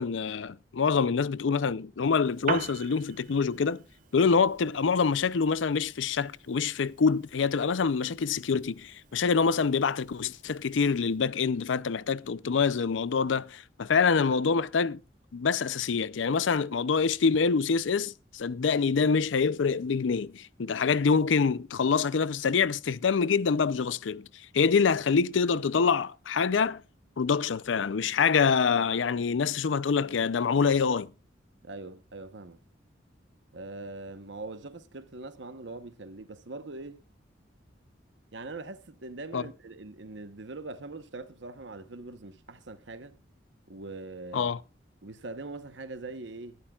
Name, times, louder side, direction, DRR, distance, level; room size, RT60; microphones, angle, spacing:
voice 1, 0.0-3.8 4.1-15.0 15.3-24.3 24.5-26.8 27.2-31.1 39.3-39.4 44.3-44.6, left 5 dB, 90° left, 0.5 m, -26 dB
Piano, 2.2-11.2, right 5 dB, 50° right, 0.9 m, -43 dB
voice 2, 31.6-32.6 33.5-37.0 38.3-43.2 43.7-44.5 45.0-46.6, right 2 dB, 70° right, 1.0 m, -42 dB
21.0 x 11.5 x 2.4 m
head